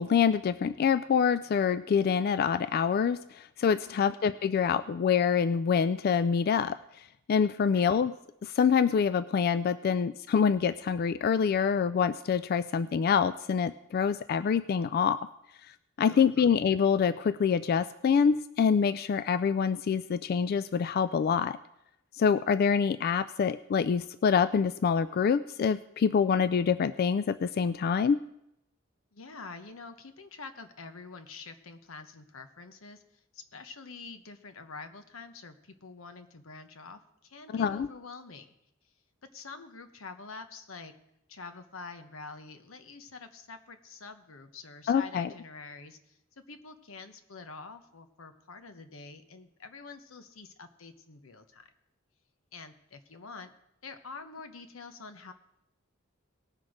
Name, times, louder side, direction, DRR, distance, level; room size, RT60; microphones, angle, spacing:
voice 1, 0.0-8.2 8.4-15.3 15.6-21.6 22.1-28.2 37.5-37.9 44.9-45.3, left 6 dB, 50° left, 14 dB, 0.3 m, -26 dB
voice 2, 3.8-4.2 7.7-7.9 16.0-16.5 29.1-33.0 33.3-38.5 39.3-40.9 41.3-46.2 46.5-51.7 52.5-53.5 53.8-55.3, left 4 dB, 90° left, 8 dB, 1.0 m, -46 dB
18.5 x 6.2 x 5.0 m, 0.82 s
head